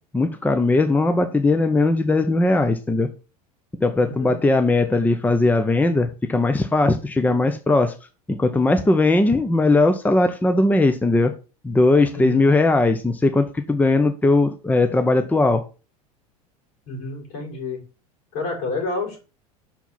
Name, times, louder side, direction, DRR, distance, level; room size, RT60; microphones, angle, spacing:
voice 1, 0.1-3.1 3.8-7.9 8.3-11.3 11.6-15.6, left 2 dB, 10° left, 0.7 m, -19 dB
voice 2, 4.0-4.4 12.1-12.5 16.8-17.8 18.3-19.2, left 3 dB, 70° left, 4.8 m, -29 dB
5.9 x 4.6 x 5.5 m
hypercardioid pair, 90°, 19 cm